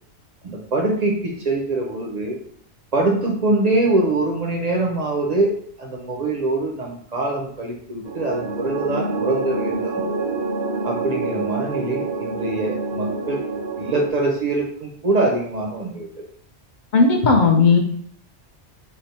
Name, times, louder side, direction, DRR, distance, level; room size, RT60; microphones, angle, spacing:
voice 1, 0.4-2.4 2.9-5.5 5.8-10.0 10.8-13.4 13.8-16.1, right 2 dB, 50° right, 0 dB, 0.5 m, -23 dB
sound 1, 8.0-14.1, right 3 dB, 70° right, 0.8 m, -27 dB
voice 2, 16.9-17.8, left 4 dB, 55° left, 3 dB, 0.6 m, -15 dB
3.3 x 2.0 x 4.0 m, 0.63 s
omnidirectional pair, 1.2 m